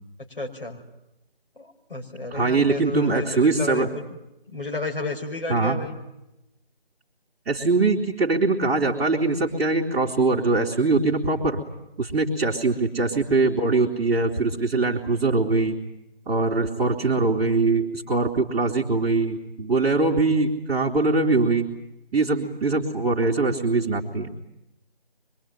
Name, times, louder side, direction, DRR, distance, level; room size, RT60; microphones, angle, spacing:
voice 1, 0.4-0.8 1.6-4.2 4.5-6.0, left 3 dB, 60° left, 1 dB, 6.2 m, -32 dB
voice 2, 2.3-3.9 5.5-5.8 7.5-11.6 12.0-15.8 16.3-21.7 22.1-24.3, right 3 dB, 5° right, -13 dB, 2.1 m, -22 dB
25.0 x 22.5 x 9.3 m, 0.91 s
figure-of-eight pair, 160°, 30 cm